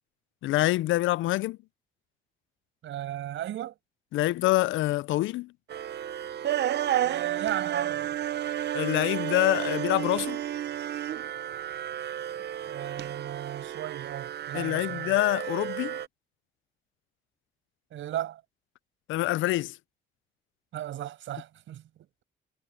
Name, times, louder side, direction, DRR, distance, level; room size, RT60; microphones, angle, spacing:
voice 1, 0.4-1.6 4.1-5.5 8.7-10.4 14.5-16.0 19.1-19.8, left 16 dB, 80° left, 0.5 m, -26 dB
voice 2, 2.8-3.7 7.0-8.2 12.7-15.1 17.9-18.4 20.7-21.8, right 12 dB, 75° right, 5.9 m, -36 dB
sound 1, 5.7-16.1, right 11 dB, 60° right, 0.8 m, -32 dB
cardioid pair, 90°, 20 cm